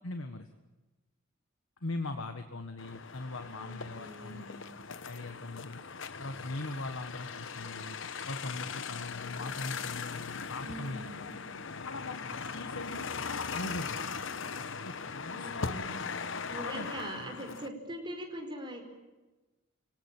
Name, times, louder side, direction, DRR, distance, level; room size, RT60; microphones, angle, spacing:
voice 1, 0.0-0.5 1.8-5.8 6.2-8.0 8.3-11.3 11.8-13.0 13.3-14.2 14.8-16.0 16.6-16.9, left 2 dB, 85° left, 7 dB, 1.5 m, -41 dB
sound 1, 2.8-17.7, left 5 dB, 70° left, 1.1 m, -39 dB
voice 2, 3.6-4.6 10.6-11.4 15.3-16.0 16.5-18.8, right 1 dB, 25° right, 2 dB, 5.0 m, -42 dB
27.0 x 17.5 x 9.0 m, 1.1 s
head